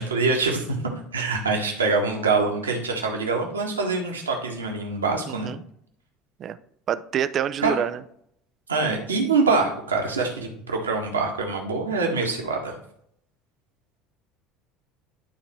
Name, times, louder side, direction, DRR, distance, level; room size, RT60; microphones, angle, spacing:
voice 1, 0.0-5.5 7.6-7.8 8.7-12.7, right 3 dB, 75° right, 1 dB, 1.6 m, -25 dB
voice 2, 5.3-5.6 6.4-6.6 6.9-8.0, right 9 dB, 40° right, 14 dB, 0.5 m, -26 dB
11.5 x 3.9 x 4.6 m, 0.69 s
figure-of-eight pair, 65°, 0 cm